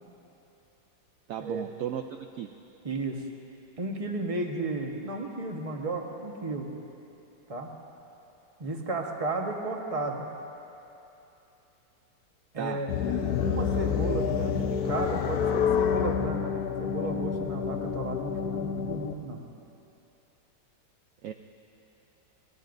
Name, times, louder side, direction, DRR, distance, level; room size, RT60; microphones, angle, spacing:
voice 1, 1.3-2.5 12.6-12.8 21.2-21.3, right 9 dB, 70° right, 5 dB, 0.8 m, -35 dB
voice 2, 2.8-3.2 3.8-6.7 7.5-7.7 8.6-10.3 12.5-12.9 13.4-16.4 16.8-19.4, right 2 dB, 25° right, 1 dB, 1.1 m, -33 dB
sound 1, 12.9-19.1, left 7 dB, 65° left, 1.1 m, -28 dB
25.5 x 20.0 x 2.6 m, 2.9 s
omnidirectional pair, 1.9 m